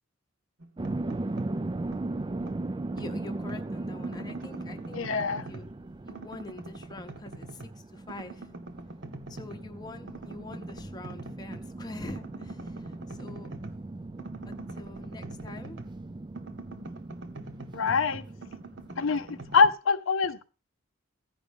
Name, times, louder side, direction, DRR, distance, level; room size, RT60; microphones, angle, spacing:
sound 1, 0.6-1.6 1.9-3.7 4.0-5.8 6.1-7.8 8.1-9.7 10.1-11.7 12.1-16.1 16.3-19.7, right 2 dB, 60° right, 1.0 m, -45 dB
sound 2, 0.8-19.7, right 2 dB, 25° right, 0.3 m, -39 dB
voice 1, 2.9-5.0 5.4-5.7 6.0-8.5 9.3-13.5 14.4-15.8, left 2 dB, 20° left, 0.8 m, -44 dB
voice 2, 4.9-5.5 17.7-18.2 19.0-20.4, left 5 dB, 75° left, 0.6 m, -25 dB
15.0 x 5.3 x 3.5 m
head